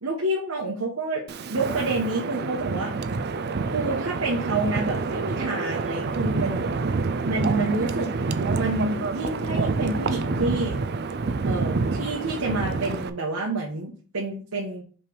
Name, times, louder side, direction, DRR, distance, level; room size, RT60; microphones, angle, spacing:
voice 1, 0.0-2.9 3.7-6.7 7.2-8.1 8.6-10.8 11.4-14.8, right 2 dB, 80° right, -2 dB, 1.2 m, -28 dB
Wind, 1.3-13.1, right 4 dB, 50° right, 0.4 m, -27 dB
5.3 x 3.3 x 5.3 m, 0.40 s
head